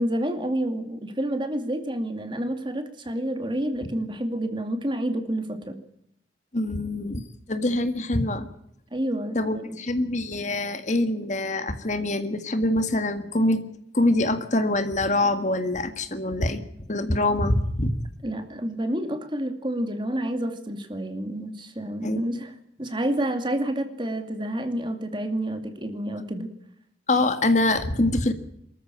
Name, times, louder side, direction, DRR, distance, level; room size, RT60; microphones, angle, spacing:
voice 1, 0.0-5.8 8.9-9.8 18.2-22.5 22.8-26.5, right 1 dB, 25° right, 7 dB, 2.4 m, -29 dB
voice 2, 6.5-8.5 9.4-13.6 13.9-16.6 16.9-18.0 22.0-22.5 27.1-28.3, left 1 dB, 40° left, 9 dB, 1.7 m, -24 dB
25.0 x 14.0 x 8.9 m, 0.74 s
head